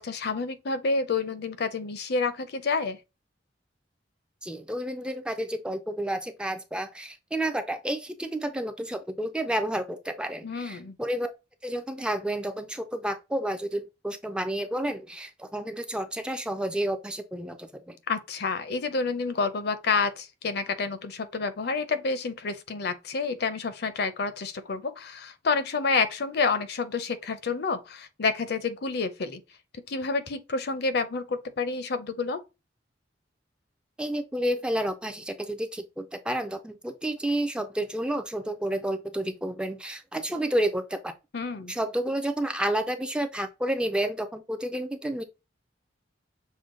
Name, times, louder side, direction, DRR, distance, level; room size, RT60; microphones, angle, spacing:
voice 1, 0.0-3.0 10.4-11.0 18.1-29.4 29.9-32.4 41.3-41.7, left 4 dB, 60° left, 0.6 m, -29 dB
voice 2, 4.4-11.3 11.6-18.0 34.0-41.1 41.7-45.2, right 1 dB, 5° right, 0.3 m, -30 dB
6.3 x 2.1 x 3.7 m
head